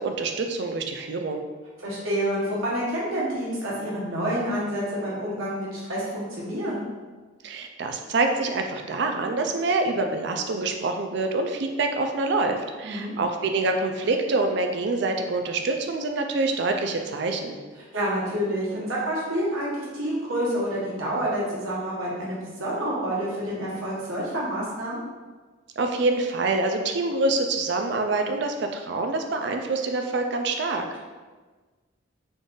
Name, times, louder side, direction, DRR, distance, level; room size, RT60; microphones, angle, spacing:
voice 1, 0.0-1.4 7.4-17.6 25.8-31.0, right 3 dB, 55° right, 4 dB, 0.4 m, -26 dB
voice 2, 1.8-6.8 12.8-13.1 17.9-25.0, equal, 80° right, -6 dB, 1.1 m, -28 dB
3.8 x 2.5 x 3.7 m, 1.3 s
head